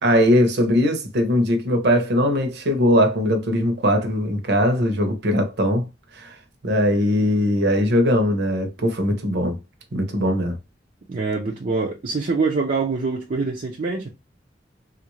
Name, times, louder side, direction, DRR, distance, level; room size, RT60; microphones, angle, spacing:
voice 1, 0.0-5.9 6.1-6.4 6.6-9.6 9.9-10.6, equal, 65° right, 0.9 m, -20 dB
voice 2, 11.1-14.1, right 4 dB, 50° right, 0.5 m, -24 dB
3.4 x 2.5 x 3.1 m
head